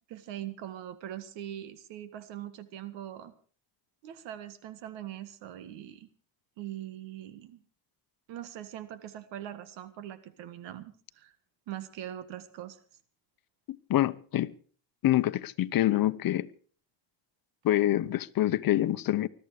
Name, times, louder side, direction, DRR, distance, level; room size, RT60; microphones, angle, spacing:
voice 1, 0.1-3.3 4.0-6.1 6.6-7.6 8.3-11.3 11.7-12.8, right 11 dB, 90° right, 1.8 m, -42 dB
voice 2, 13.7-14.5 15.0-16.5 17.6-19.3, left 14 dB, 55° left, 0.9 m, -26 dB
20.5 x 13.0 x 4.9 m
cardioid pair, 125°, 43 cm